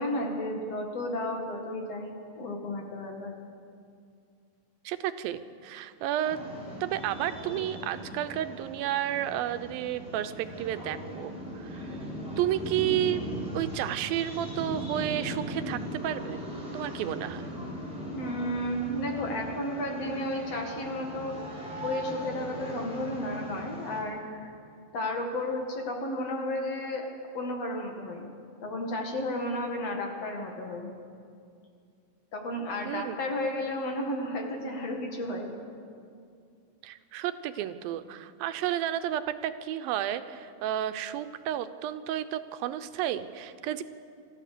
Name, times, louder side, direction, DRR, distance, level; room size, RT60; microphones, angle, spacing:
voice 1, 0.0-3.3 18.1-21.4 21.8-24.5 24.9-27.1 27.3-28.3 28.6-30.9 32.3-35.5, left 1 dB, 50° left, 1 dB, 2.9 m, -33 dB
voice 2, 4.9-6.4 6.8-11.9 12.4-13.2 13.5-16.5 16.7-17.5 32.9-33.2 36.8-43.8, right 12 dB, 90° right, 11 dB, 2.6 m, -31 dB
sound 1, 6.2-24.0, equal, ahead, 4.9 m, -39 dB
27.0 x 14.0 x 6.8 m, 2.3 s
omnidirectional pair, 4.0 m